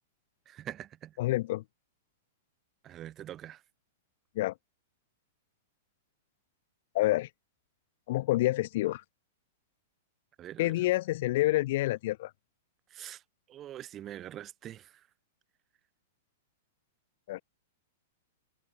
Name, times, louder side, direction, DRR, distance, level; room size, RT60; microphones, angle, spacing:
voice 1, 0.5-1.2 2.8-3.6 10.4-10.7 12.9-13.2 13.5-15.0, right 12 dB, 25° right, 2.3 m, -44 dB
voice 2, 1.2-1.6 4.4-4.5 6.9-7.3 8.1-9.0 10.6-12.3 17.3-17.4, left 17 dB, 55° left, 0.5 m, -28 dB
hypercardioid pair, 140°, 0 cm